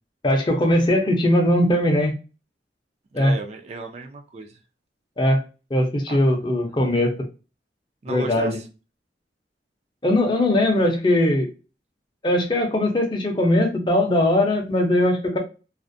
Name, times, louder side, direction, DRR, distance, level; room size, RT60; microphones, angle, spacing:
voice 1, 0.2-2.1 3.1-3.3 5.2-5.4 5.7-7.1 8.1-8.6 10.0-11.5 12.2-15.4, left 1 dB, 25° left, 0.5 m, -20 dB
voice 2, 3.1-4.6 6.1-6.2 8.0-8.7, right 3 dB, 35° right, 0.3 m, -35 dB
2.4 x 2.0 x 2.5 m
head